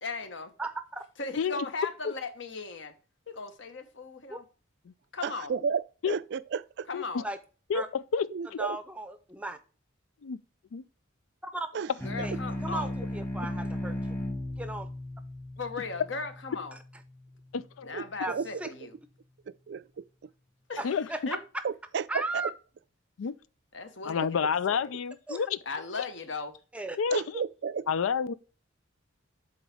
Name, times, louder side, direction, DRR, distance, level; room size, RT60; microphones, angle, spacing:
voice 1, 0.0-0.5 1.2-2.9 3.3-4.4 5.1-5.5 6.9-7.3 12.0-12.9 15.6-16.8 17.8-19.0 20.7-21.4 23.7-24.4 24.7-24.9 25.6-26.6, left 4 dB, 60° left, 1.1 m, -37 dB
voice 2, 0.6-1.0 4.3-4.4 7.2-7.4 7.7-7.9 8.6-9.6 11.4-11.7 12.2-14.2 14.6-14.9 18.2-18.7 20.8-21.2 22.1-22.5 25.3-25.5 26.7-27.0, right 2 dB, 5° right, 0.6 m, -36 dB
voice 3, 5.2-6.9 8.3-8.8 11.7-11.9 17.9-18.5 19.5-20.0 21.6-22.5 27.1-27.9, right 6 dB, 55° right, 0.3 m, -33 dB
voice 4, 7.7-8.6 10.2-10.4 10.7-10.8 17.5-17.9 20.8-21.1 23.2-23.4 24.0-25.6 27.0-27.4 27.9-28.3, left 6 dB, 80° left, 0.4 m, -29 dB
sound 1, 12.0-16.9, left 1 dB, 10° left, 1.2 m, -36 dB
7.8 x 4.0 x 4.8 m
head